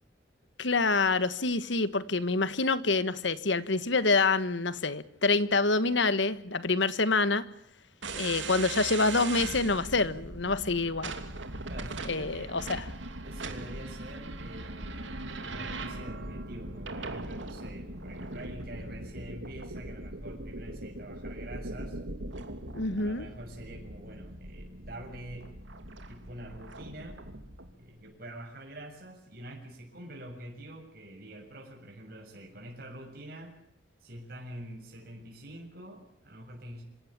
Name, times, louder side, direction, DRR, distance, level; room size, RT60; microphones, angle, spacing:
voice 1, 0.6-7.4 8.1-11.1 12.1-12.8 22.7-23.2, left 3 dB, 75° left, 1.5 m, -27 dB
sound 1, 8.0-27.7, right 2 dB, 80° right, 2.9 m, -40 dB
voice 2, 11.7-12.6 13.2-15.1 15.4-22.0 23.0-25.5 26.1-27.2 27.8-33.5 34.0-36.8, right 1 dB, 50° right, 7.0 m, -46 dB
26.5 x 17.0 x 8.7 m
head